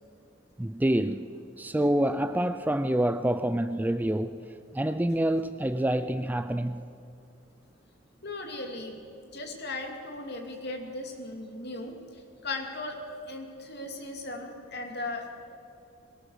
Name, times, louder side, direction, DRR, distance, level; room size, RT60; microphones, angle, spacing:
voice 1, 0.6-4.4 4.7-6.9, right 1 dB, 10° right, 0.4 m, -27 dB
voice 2, 8.2-13.0 13.2-15.2, left 2 dB, 55° left, 2.7 m, -37 dB
21.5 x 18.5 x 6.5 m
head